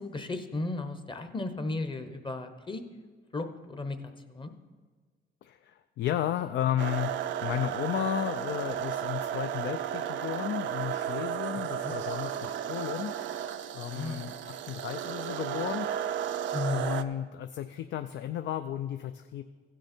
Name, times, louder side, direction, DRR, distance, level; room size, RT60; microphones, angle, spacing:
voice 1, 0.0-2.8 3.3-4.0 4.3-4.5 11.7-11.9 13.9-14.2 16.5-17.0, left 2 dB, 25° left, 8 dB, 0.9 m, -34 dB
voice 2, 5.4-7.1 7.4-13.1 13.7-15.9 16.7-19.4, left 11 dB, 65° left, 9 dB, 0.4 m, -33 dB
sound 1, 6.8-17.0, right 9 dB, 70° right, 0.5 m, -34 dB
15.5 x 6.3 x 4.3 m, 1.5 s
cardioid pair, 90°, 20 cm